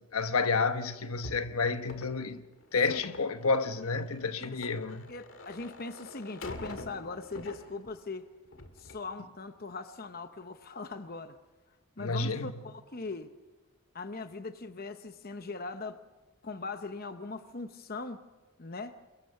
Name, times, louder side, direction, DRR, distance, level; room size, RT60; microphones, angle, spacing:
voice 1, 0.0-2.4 2.7-5.1 12.0-12.5, left 4 dB, 75° left, 1.1 m, -30 dB
sound 1, 1.2-8.1 8.4-9.1, left 2 dB, 60° left, 1.9 m, -46 dB
voice 2, 5.1-8.3 8.8-11.4 12.0-13.3 13.9-16.0 16.4-18.2 18.6-18.9, left 3 dB, 40° left, 0.9 m, -40 dB
28.0 x 22.5 x 5.8 m
head